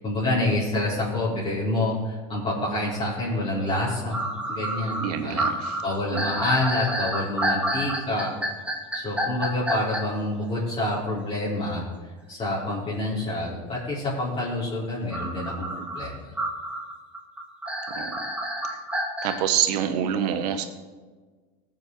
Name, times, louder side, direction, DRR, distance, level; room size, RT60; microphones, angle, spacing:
voice 1, 0.0-5.4 5.8-8.3 8.9-11.9 12.3-16.3, left 1 dB, 30° left, -9 dB, 4.2 m, -27 dB
sound 1, 3.7-3.8 4.1-10.0 15.1-19.4, right 1 dB, 5° right, 2.4 m, -29 dB
voice 2, 5.0-5.8 6.1-6.2 17.9-18.3 19.2-20.7, right 9 dB, 85° right, 8 dB, 1.3 m, -26 dB
18.0 x 7.5 x 4.6 m, 1.4 s
supercardioid pair, 105°, 20 cm